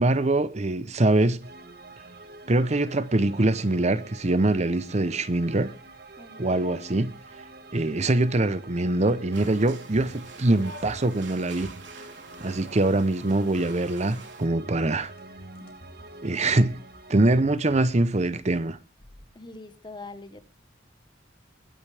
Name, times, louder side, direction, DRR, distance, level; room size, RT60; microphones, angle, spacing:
voice 1, 0.0-1.5 2.5-5.7 6.4-7.1 7.7-11.7 12.4-15.1 16.2-16.8 17.1-18.8, right 2 dB, 40° right, 0.8 m, -23 dB
sound 1, 1.4-17.4, right 2 dB, 60° right, 1.6 m, -47 dB
voice 2, 6.2-6.6 19.3-20.4, left 2 dB, 25° left, 1.3 m, -43 dB
sound 2, 9.0-9.6 9.9-10.4 10.8-11.3 11.6-12.1 12.4-13.9 14.6-16.2 16.5-18.6 19.0-19.3, equal, 55° left, 3.3 m, -48 dB
sound 3, 9.3-14.5, right 3 dB, 80° right, 3.4 m, -46 dB
21.5 x 9.0 x 3.4 m
head